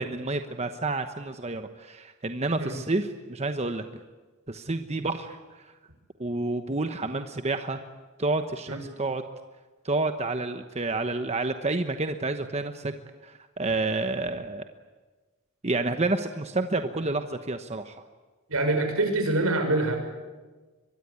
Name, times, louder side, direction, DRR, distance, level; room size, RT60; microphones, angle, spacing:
voice 1, 0.0-3.8 4.5-5.4 5.6-5.7 6.2-7.8 8.2-9.3 9.8-12.9 13.2-14.6 15.6-17.9, right 2 dB, 30° right, 7 dB, 1.0 m, -29 dB
voice 2, 18.5-20.0, right 2 dB, 85° right, 5 dB, 6.1 m, -25 dB
24.0 x 21.5 x 9.6 m, 1.3 s
head